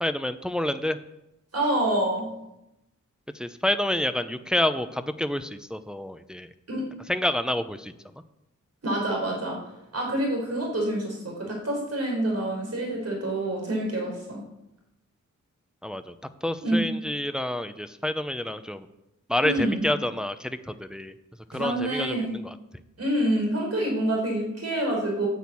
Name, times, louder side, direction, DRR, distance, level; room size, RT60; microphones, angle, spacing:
voice 1, 0.0-1.0 3.3-6.5 7.1-7.9 15.8-16.1 16.4-18.9 19.3-21.1 21.5-22.6, left 1 dB, ahead, 10 dB, 0.7 m, -28 dB
voice 2, 1.5-2.3 6.7-6.9 8.8-9.6 9.9-14.4 16.6-16.8 19.4-19.9 21.5-22.3 23.0-25.3, right 1 dB, 50° right, -1 dB, 5.4 m, -27 dB
10.5 x 9.1 x 8.4 m, 0.90 s
wide cardioid pair, 120°, 32 cm